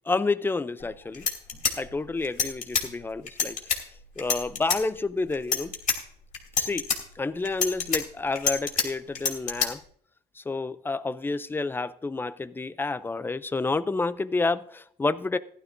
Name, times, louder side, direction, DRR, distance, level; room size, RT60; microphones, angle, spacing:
voice 1, 0.1-1.3 1.8-3.6 4.2-5.7 6.6-6.9 7.2-9.8 10.4-15.4, left 3 dB, 10° left, 14 dB, 0.5 m, -29 dB
sound 1, 0.8-0.9 1.1-2.9 3.3-3.8 4.2-4.8 5.3-6.0 6.3-7.0 7.5-8.9 9.2-9.7, left 6 dB, 50° left, 2.6 m, -26 dB
15.5 x 11.5 x 2.6 m, 0.64 s
cardioid pair, 110°, 17 cm